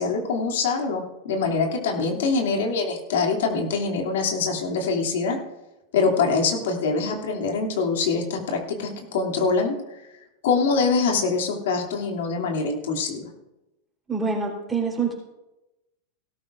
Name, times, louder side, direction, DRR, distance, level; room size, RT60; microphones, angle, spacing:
voice 1, 0.0-5.4 5.9-10.0 10.4-13.3, left 4 dB, 85° left, 1 dB, 2.7 m, -24 dB
voice 2, 14.1-15.1, right 5 dB, 10° right, -2 dB, 3.8 m, -26 dB
18.0 x 13.5 x 2.6 m, 0.98 s
supercardioid pair, 155°, 0 cm